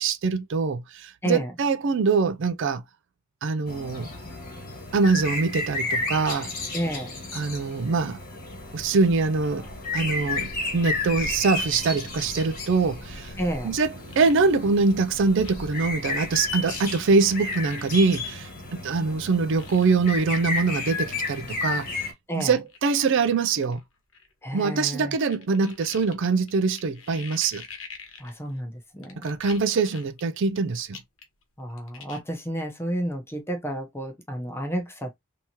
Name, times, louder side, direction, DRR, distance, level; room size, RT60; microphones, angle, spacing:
voice 1, 0.0-2.8 3.4-4.1 4.9-6.5 7.3-8.2 8.7-9.7 9.9-13.3 13.6-21.9 22.3-23.8 24.5-27.6 29.2-31.0, right 4 dB, 60° right, 0.4 m, -24 dB
sound 1, 3.7-22.1, left 3 dB, 45° left, 1.5 m, -33 dB
voice 2, 6.7-7.1 13.4-13.8 22.3-22.5 24.4-25.1 28.2-29.3 31.6-35.1, equal, 10° left, 0.8 m, -31 dB
sound 2, 13.2-14.4 14.7-14.8 15.4-15.8 16.2-16.4 17.3-18.3 19.1-19.2 19.6-19.9 20.5-20.6 20.9-21.0 21.8-21.9 22.4-22.8 23.6-24.9 25.2-28.6 29.0-30.6 30.9-31.4 31.7-32.2, left 6 dB, 65° left, 1.1 m, -45 dB
3.5 x 2.8 x 2.9 m
head